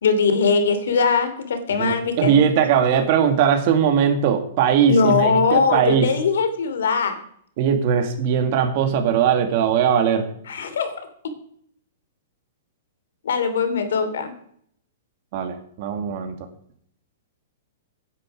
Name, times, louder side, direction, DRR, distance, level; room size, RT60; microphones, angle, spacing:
voice 1, 0.0-2.4 4.9-7.2 10.5-10.9 13.2-14.3, left 5 dB, 85° left, 9 dB, 3.0 m, -20 dB
voice 2, 1.8-6.1 7.6-10.3 15.3-16.3, right 8 dB, 40° right, 7 dB, 2.3 m, -20 dB
16.5 x 10.0 x 4.9 m, 0.66 s
hypercardioid pair, 170°, 0 cm